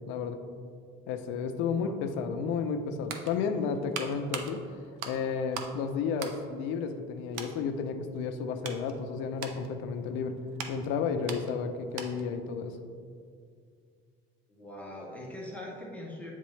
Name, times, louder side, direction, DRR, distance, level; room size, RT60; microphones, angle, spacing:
voice 1, 0.1-0.4 1.1-4.6 5.1-10.4 10.7-12.8, left 5 dB, 65° left, 7 dB, 0.5 m, -32 dB
sound 1, 2.7-5.8 6.1-7.1 7.3-7.6 8.1-12.4 12.7-12.8, right 6 dB, 80° right, 0.6 m, -42 dB
voice 2, 14.5-16.3, left 1 dB, 5° left, -4 dB, 0.5 m, -42 dB
8.4 x 3.7 x 3.1 m, 2.2 s
cardioid pair, 175°, 21 cm